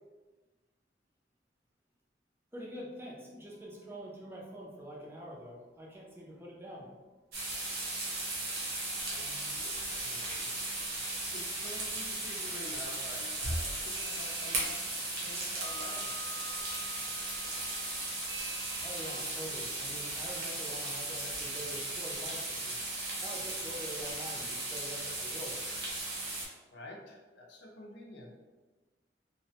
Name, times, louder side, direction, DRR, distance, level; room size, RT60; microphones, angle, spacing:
voice 1, 2.5-6.9 18.8-22.8 23.2-25.6, equal, 15° right, -3 dB, 0.5 m, -45 dB
sound 1, 3.5-5.5 5.7-5.8 6.1-6.2 13.1-13.2 13.9-19.2, right 3 dB, 80° right, 0.4 m, -50 dB
sound 2, 7.3-26.4, right 2 dB, 65° right, 0.9 m, -36 dB
voice 2, 9.0-10.6 11.3-16.3 26.7-28.3, left 1 dB, 80° left, -1 dB, 0.6 m, -49 dB
3.1 x 2.1 x 2.8 m, 1.3 s
head